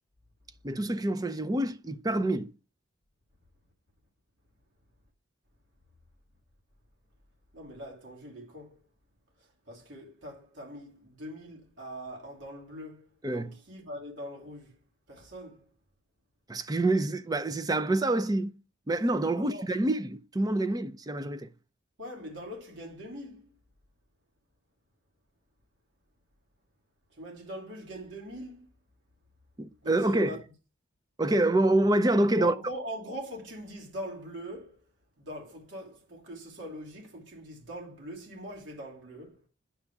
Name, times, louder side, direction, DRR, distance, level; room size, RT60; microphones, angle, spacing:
voice 1, 0.6-2.5 13.2-13.5 16.5-18.5 18.9-21.5 29.6-30.4 31.2-32.5, right 1 dB, 20° right, 0.4 m, -26 dB
voice 2, 7.5-8.8 9.4-14.8 15.1-15.7 19.4-19.7 22.0-23.5 27.1-28.7 29.8-30.4 32.4-34.8 35.2-39.4, equal, 65° right, 2.8 m, -42 dB
9.9 x 3.5 x 7.0 m
head